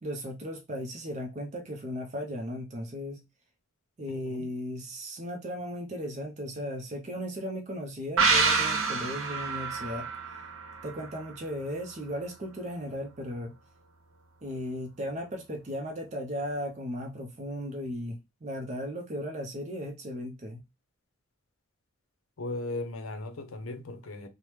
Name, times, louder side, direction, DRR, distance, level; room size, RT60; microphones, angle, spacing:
voice 1, 0.0-3.2 4.0-10.1 10.8-13.5 14.4-20.6, equal, 35° right, 0.5 m, -36 dB
voice 2, 4.2-4.5 22.4-24.3, left 2 dB, 75° left, 0.6 m, -37 dB
sound 1, 8.2-11.6 11.9-12.0, right 4 dB, 80° right, 0.8 m, -28 dB
3.0 x 2.0 x 3.2 m
head